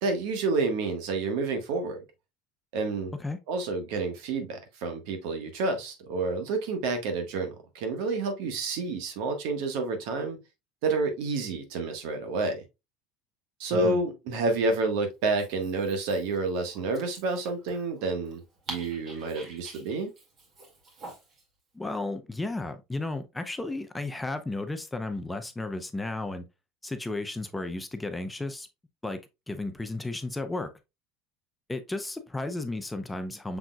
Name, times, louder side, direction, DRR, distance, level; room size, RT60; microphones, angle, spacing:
voice 1, 0.0-2.0 2.7-3.1 3.5-10.4 10.8-12.6 13.6-18.4 18.7-20.1, right 3 dB, 70° right, 1.3 m, -29 dB
Dog, 15.2-21.4, right 2 dB, 45° right, 2.0 m, -47 dB
voice 2, 21.7-26.5 26.8-28.7 29.0-29.2 29.5-30.7 31.7-33.6, left 2 dB, 10° left, 0.6 m, -33 dB
6.0 x 3.6 x 2.2 m
supercardioid pair, 110°, 0 cm